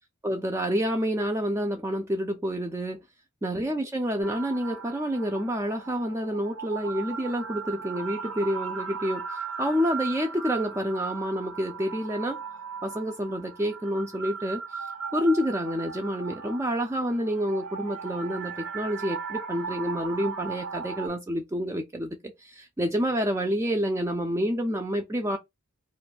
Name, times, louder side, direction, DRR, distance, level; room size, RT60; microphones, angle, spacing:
voice 1, 0.2-3.0 3.4-12.4 12.8-14.9 15.1-25.4, equal, 10° right, 0.3 m, -28 dB
sound 1, 4.2-21.1, right 6 dB, 80° right, 1.2 m, -37 dB
2.5 x 2.2 x 4.0 m
head